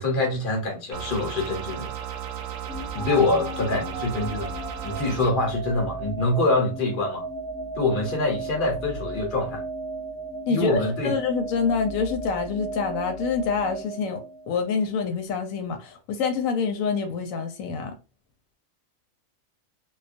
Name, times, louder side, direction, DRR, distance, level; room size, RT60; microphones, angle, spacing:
voice 1, 0.0-1.9 2.9-7.3 7.8-9.6 10.5-11.1, left 2 dB, 45° left, 1.0 m, -25 dB
sound 1, 0.9-5.3, right 9 dB, 65° right, 0.7 m, -35 dB
sound 2, 2.7-14.8, right 2 dB, 25° right, 0.7 m, -35 dB
voice 2, 10.5-18.0, left 5 dB, 85° left, 1.0 m, -26 dB
2.3 x 2.3 x 2.5 m
omnidirectional pair, 1.4 m